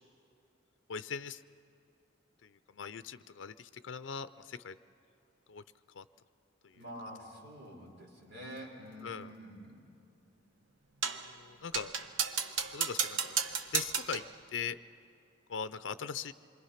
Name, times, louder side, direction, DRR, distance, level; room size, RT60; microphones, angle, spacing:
voice 1, 0.9-1.4 2.4-4.8 5.5-5.6 5.9-6.0 6.6-6.8 9.0-9.3 11.4-11.9 12.7-13.4 13.7-14.2 14.5-14.8 15.5-16.3, left 6 dB, 80° left, 12 dB, 0.5 m, -40 dB
voice 2, 6.7-9.8, equal, 65° right, -1 dB, 4.7 m, -47 dB
sound 1, 11.0-11.3 11.7-14.3, right 6 dB, 85° right, 1.1 m, -33 dB
27.5 x 23.5 x 5.8 m, 2.8 s
head